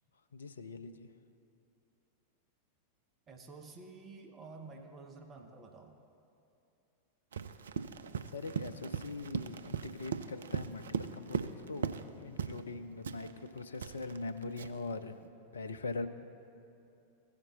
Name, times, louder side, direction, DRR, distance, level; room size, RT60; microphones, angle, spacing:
voice 1, 0.3-1.1 8.3-15.2 15.5-16.1, left 3 dB, 70° left, 12 dB, 0.4 m, -42 dB
voice 2, 3.3-6.0, right 3 dB, 25° right, 3 dB, 0.7 m, -50 dB
Run, 7.3-12.1 12.4-12.7 13.0-14.9, right 6 dB, 65° right, 0.3 m, -39 dB
15.5 x 5.2 x 3.9 m, 2.6 s
figure-of-eight pair, 90°, 0 cm